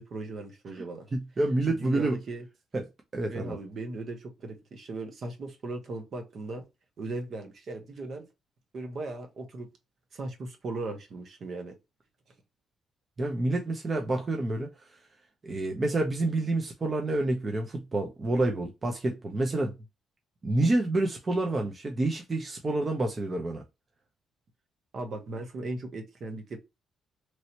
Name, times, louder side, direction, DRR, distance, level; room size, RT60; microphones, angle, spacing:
voice 1, 0.0-1.1 1.7-2.4 3.3-6.7 7.0-8.3 8.7-9.7 10.1-11.7 24.9-26.6, right 2 dB, 55° right, 1.1 m, -38 dB
voice 2, 1.1-2.2 2.7-2.9 3.1-3.6 13.2-14.9 15.4-19.7 20.4-23.6, right 2 dB, 35° right, 0.7 m, -28 dB
3.2 x 2.8 x 2.7 m
cardioid pair, 90°, 0 cm